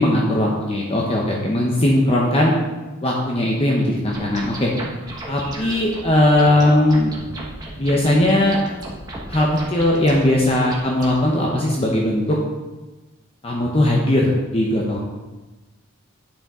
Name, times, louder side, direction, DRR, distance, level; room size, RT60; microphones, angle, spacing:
voice 1, 0.0-2.6 3.0-4.7 5.3-7.1 7.8-8.6 9.3-12.4 13.4-15.0, left 1 dB, 25° left, -2 dB, 0.9 m, -18 dB
sound 1, 4.1-11.2, right 1 dB, 20° right, 1.4 m, -35 dB
10.0 x 5.7 x 3.7 m, 1.2 s
head